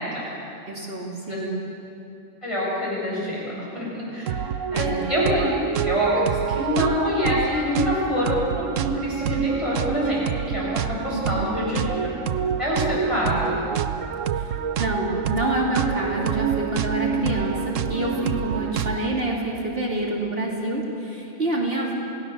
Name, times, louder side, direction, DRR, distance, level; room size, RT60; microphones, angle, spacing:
voice 1, 0.7-1.5 4.7-5.1 11.1-11.5 13.3-13.4 14.3-21.9, right 1 dB, 50° right, -2 dB, 2.9 m, -27 dB
voice 2, 2.4-4.3 4.7-11.8 12.6-13.6, left 1 dB, 25° left, -7 dB, 7.9 m, -26 dB
sound 1, 4.3-19.2, right 8 dB, 85° right, 1.1 m, -27 dB
28.5 x 17.5 x 6.9 m, 2.7 s
omnidirectional pair, 1.3 m